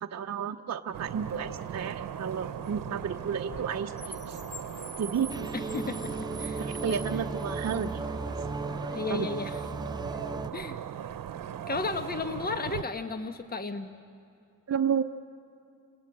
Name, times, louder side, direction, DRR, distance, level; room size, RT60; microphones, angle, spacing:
voice 1, 0.0-4.4 5.0-5.3 6.6-8.0 9.1-9.3 14.7-15.0, right 7 dB, 50° right, 4 dB, 0.8 m, -32 dB
sound 1, 0.9-12.8, right 9 dB, 80° right, 0.9 m, -39 dB
Car, 1.2-8.8, left 1 dB, 60° left, 2.1 m, -46 dB
Arcane temple, 5.3-10.5, right 3 dB, 15° right, 0.6 m, -36 dB
voice 2, 5.5-6.6 8.9-9.6 10.5-10.8 11.7-13.9, left 3 dB, 30° left, 9 dB, 1.2 m, -34 dB
29.5 x 20.0 x 8.8 m, 2.7 s
cardioid pair, 75°, 33 cm